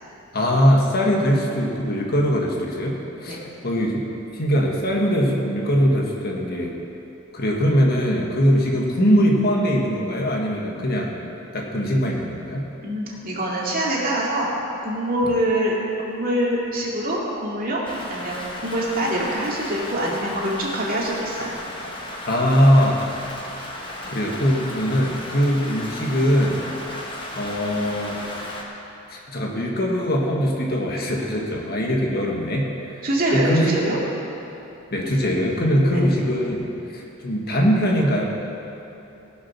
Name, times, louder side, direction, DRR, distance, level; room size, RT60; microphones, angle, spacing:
voice 1, 0.3-4.1 4.3-6.7 7.3-11.1 11.5-12.7 22.3-23.0 24.1-26.6 27.3-28.2 29.1-33.0 33.3-33.8 34.9-38.2, equal, 50° left, -1 dB, 1.6 m, -21 dB
voice 2, 12.8-14.5 14.8-15.8 16.1-17.8 18.1-21.6 33.0-34.0 35.9-36.0, right 1 dB, 45° right, -4 dB, 2.4 m, -24 dB
Rain, 17.8-28.6, left 1 dB, 25° left, 1.3 m, -35 dB
18.5 x 6.3 x 6.1 m, 2.9 s
head